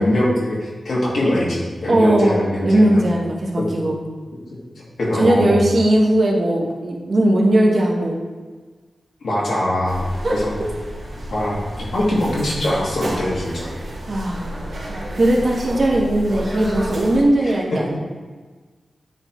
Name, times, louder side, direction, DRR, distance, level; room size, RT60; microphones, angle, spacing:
voice 1, 0.0-3.1 3.6-3.7 4.8-5.6 9.2-10.0 10.3-10.5 11.3-13.7 17.4-17.8, left 1 dB, 75° left, -5 dB, 1.7 m, -22 dB
voice 2, 1.9-4.0 5.1-8.2 10.2-10.7 14.1-14.6 14.9-18.0, right 1 dB, 55° right, -2 dB, 1.0 m, -18 dB
sound 1, 9.9-17.2, equal, 90° right, 2.0 m, -31 dB
9.5 x 3.9 x 3.0 m, 1.4 s
wide cardioid pair, 130°, 0 cm